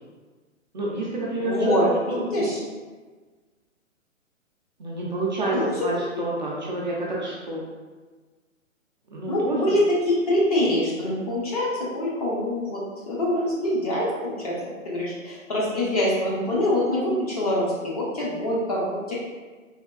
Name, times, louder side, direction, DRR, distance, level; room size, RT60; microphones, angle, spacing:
voice 1, 0.7-2.5 4.8-7.6 9.1-9.8, right 2 dB, 35° right, -5 dB, 0.4 m, -28 dB
voice 2, 1.4-2.6 5.5-5.7 6.1-6.2 9.3-12.8 13.1-19.1, left 1 dB, 30° left, -6 dB, 0.5 m, -25 dB
3.4 x 2.2 x 2.2 m, 1.4 s
figure-of-eight pair, 130°, 40 cm